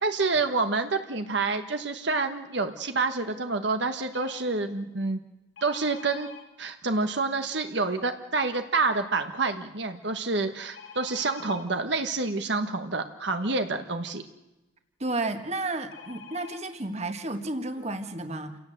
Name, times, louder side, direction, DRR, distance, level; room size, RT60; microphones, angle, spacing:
voice 1, 0.0-5.2 5.6-6.3 6.6-14.2, right 3 dB, 60° right, 7 dB, 1.3 m, -28 dB
sound 1, 4.1-4.4 5.6-6.4 10.7-11.6 15.9-16.6 17.4-17.5 17.8-18.0, left 5 dB, 70° left, 3.1 m, -46 dB
voice 2, 15.0-18.6, right 2 dB, 35° right, 7 dB, 1.6 m, -32 dB
28.5 x 17.5 x 7.9 m, 1.0 s
head